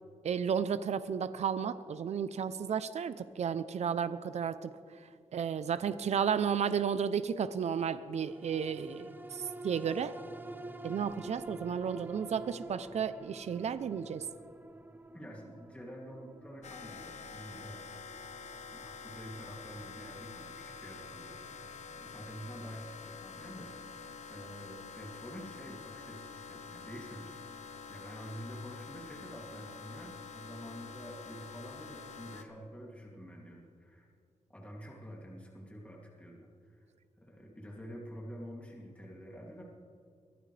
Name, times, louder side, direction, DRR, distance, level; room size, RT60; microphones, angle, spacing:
voice 1, 0.2-4.7 5.0-10.2 10.8-14.3, right 7 dB, 65° right, 13 dB, 0.6 m, -33 dB
sound 1, 8.2-22.8 23.3-23.4, right 1 dB, 15° right, 0.9 m, -50 dB
voice 2, 15.1-17.8 18.7-24.0 24.3-34.1 34.5-36.8 37.2-39.6, equal, 10° left, -3 dB, 2.7 m, -48 dB
sound 2, 16.6-32.4, left 5 dB, 70° left, 1.0 m, -47 dB
23.0 x 15.0 x 3.4 m, 2.4 s
wide cardioid pair, 100°, 12 cm